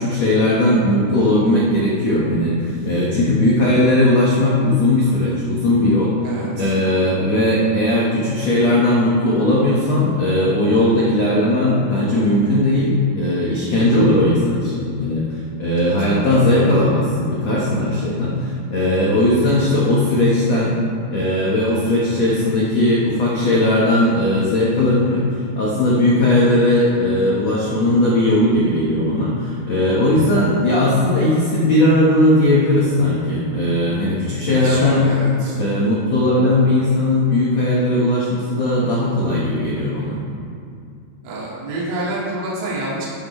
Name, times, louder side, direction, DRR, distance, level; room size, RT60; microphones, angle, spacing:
voice 1, 0.0-6.1 6.5-20.8 21.1-25.2 25.5-35.0 35.5-40.2, left 1 dB, 65° left, -6 dB, 1.6 m, -18 dB
voice 2, 2.6-3.1 6.2-6.7 15.8-16.2 34.5-35.6 41.2-43.1, right 1 dB, 85° right, -7 dB, 4.6 m, -28 dB
12.5 x 12.5 x 3.3 m, 2.4 s
omnidirectional pair, 5.3 m